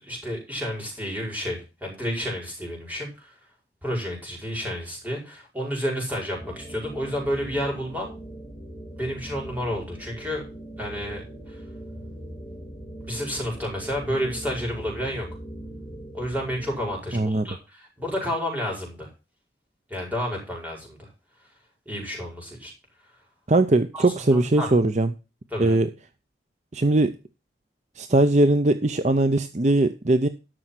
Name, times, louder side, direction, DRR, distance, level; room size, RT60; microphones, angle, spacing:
voice 1, 0.0-3.3 3.8-8.1 8.9-10.4 10.8-11.2 11.5-11.6 13.0-15.3 16.1-19.1 19.9-21.1 21.9-22.7 23.9-24.7 25.5-25.8, equal, 10° right, -1 dB, 5.1 m, -30 dB
sound 1, 6.3-17.0, right 1 dB, 20° left, 3.3 m, -40 dB
voice 2, 17.1-17.6 23.5-25.1 25.6-25.9 26.7-27.2 28.0-30.3, right 2 dB, 40° right, 10 dB, 0.6 m, -20 dB
12.5 x 6.3 x 5.8 m, 0.31 s
head